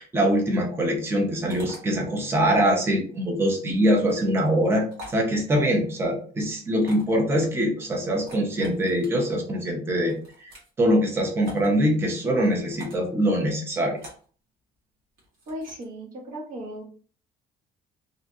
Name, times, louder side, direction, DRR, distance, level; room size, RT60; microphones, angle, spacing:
voice 1, 0.0-10.2 10.4-14.0, equal, 15° right, 1 dB, 0.5 m, -23 dB
sound 1, 1.5-1.8 4.0-4.2 4.9-5.2 6.8-7.2 8.1-9.1 10.0-10.7 11.4-11.7 12.7-13.1 14.0-14.3 15.2-15.8, equal, 70° right, 1.2 m, -44 dB
voice 2, 15.5-16.8, equal, 55° right, 0 dB, 0.9 m, -36 dB
2.6 x 2.5 x 2.2 m, 0.42 s
cardioid pair, 170°, 17 cm